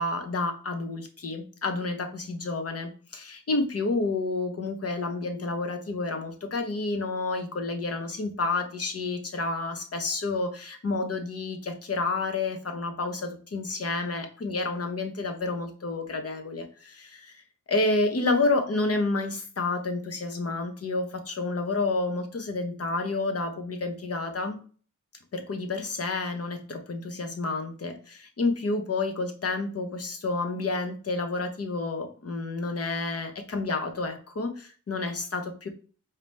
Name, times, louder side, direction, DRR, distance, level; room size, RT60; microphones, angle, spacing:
voice 1, 0.0-24.6 25.3-35.7, left 3 dB, 45° left, 5 dB, 1.1 m, -30 dB
4.8 x 2.9 x 3.5 m, 0.40 s
wide cardioid pair, 100°, 33 cm